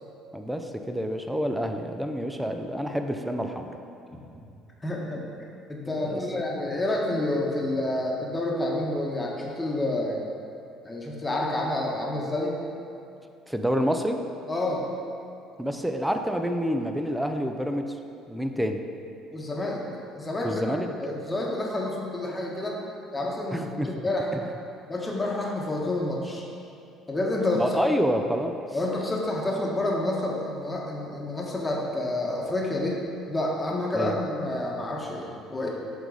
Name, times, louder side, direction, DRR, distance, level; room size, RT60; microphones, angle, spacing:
voice 1, 0.3-3.8 6.0-6.2 13.5-14.2 15.6-17.9 18.3-18.8 20.4-20.9 23.5-23.9 24.4-24.5 27.6-28.6 33.9-34.2, equal, 5° right, 5 dB, 0.5 m, -28 dB
voice 2, 4.8-5.2 5.7-10.2 10.8-12.6 14.5-14.8 19.3-19.8 20.1-22.8 23.1-24.3 24.9-26.4 27.1-27.6 28.7-35.7, left 1 dB, 20° left, -2 dB, 1.2 m, -29 dB
7.8 x 3.8 x 3.9 m, 2.7 s
supercardioid pair, 70°, 0 cm